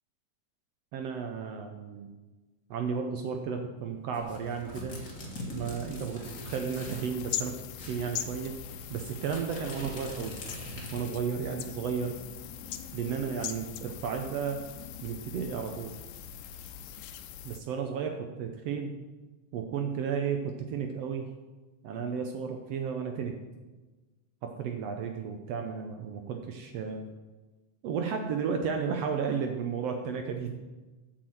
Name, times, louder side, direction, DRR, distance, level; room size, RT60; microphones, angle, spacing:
voice 1, 0.9-2.1 2.7-5.0 5.5-7.5 7.9-8.5 8.9-10.4 10.7-12.2 12.9-14.6 15.0-15.9 17.4-19.0 19.5-21.3 21.8-23.3 24.4-27.0 27.8-30.6, right 6 dB, 80° right, 4 dB, 1.4 m, -33 dB
sound 1, 4.1-7.2 7.4-7.5 7.8-11.3, left 1 dB, 35° left, 1.7 m, -43 dB
sound 2, 6.2-17.6, left 10 dB, 85° left, 2.3 m, -41 dB
8.6 x 6.1 x 7.7 m, 1.2 s
omnidirectional pair, 3.7 m